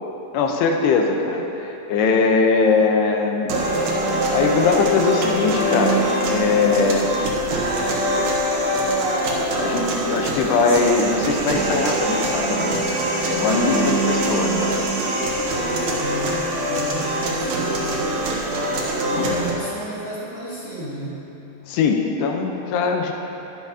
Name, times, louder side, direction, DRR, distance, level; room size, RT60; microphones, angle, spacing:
voice 1, 0.3-3.5 4.3-6.0 6.3-7.1 9.6-14.6 19.1-19.4 21.7-23.1, left 4 dB, 85° left, 3 dB, 2.9 m, -21 dB
sound 1, 3.5-19.5, right 1 dB, 65° right, 2.2 m, -23 dB
voice 2, 15.9-18.6 19.1-21.2, right 2 dB, 35° left, -10 dB, 3.0 m, -33 dB
20.5 x 7.0 x 2.8 m, 3.0 s
omnidirectional pair, 4.6 m